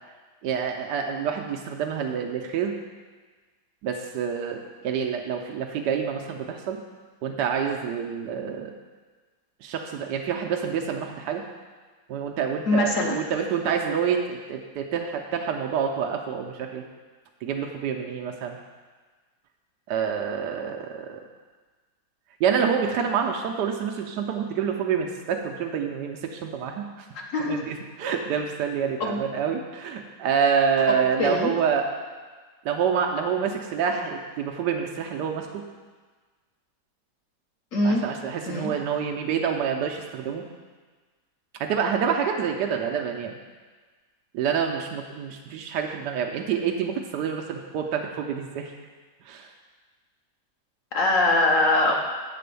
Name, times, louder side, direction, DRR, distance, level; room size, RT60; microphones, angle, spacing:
voice 1, 0.4-2.8 3.8-6.8 7.2-8.7 9.6-11.4 12.1-16.8 17.4-18.6 19.9-21.2 22.4-27.1 27.4-31.9 32.6-35.6 37.8-40.4 41.6-43.3 44.3-48.7 49.3-49.5, right 7 dB, 75° right, 2 dB, 1.2 m, -27 dB
voice 2, 12.7-13.2 27.1-27.6 29.0-29.2 30.9-31.5 37.7-38.0 38.5-38.7 50.9-52.0, left 2 dB, 55° left, 1 dB, 1.1 m, -23 dB
7.7 x 4.1 x 6.8 m, 1.4 s
omnidirectional pair, 1.9 m